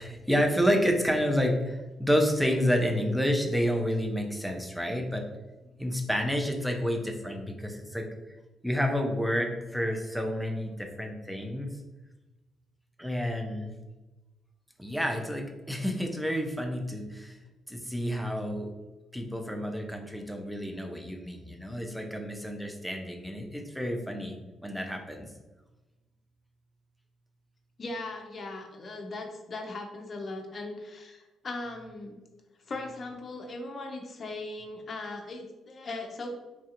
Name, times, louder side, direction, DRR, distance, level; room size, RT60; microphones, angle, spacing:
voice 1, 0.0-5.2 5.8-8.1 8.6-11.7 13.0-13.7 14.8-17.4 17.7-18.7 19.1-24.3 24.6-25.3, equal, ahead, 3 dB, 0.6 m, -29 dB
voice 2, 27.8-32.2 32.7-36.4, left 2 dB, 45° left, 3 dB, 0.6 m, -38 dB
3.3 x 2.6 x 2.5 m, 1.1 s
hypercardioid pair, 45°, 0 cm